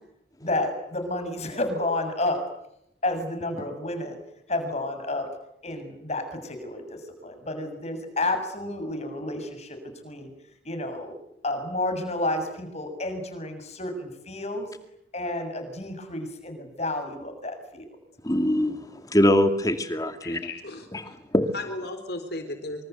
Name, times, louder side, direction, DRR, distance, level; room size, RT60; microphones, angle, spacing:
voice 1, 0.4-2.4 3.0-4.2 4.5-5.3 5.6-9.8 10.0-10.3 10.6-11.1 11.4-14.7 15.1-17.9, left 2 dB, 35° left, 7 dB, 7.1 m, -30 dB
voice 2, 18.2-20.5 20.9-21.5, left 1 dB, 20° left, 8 dB, 2.3 m, -23 dB
voice 3, 20.2-20.9 21.5-22.9, left 2 dB, 55° left, 8 dB, 4.0 m, -35 dB
27.5 x 26.0 x 8.2 m, 0.78 s
head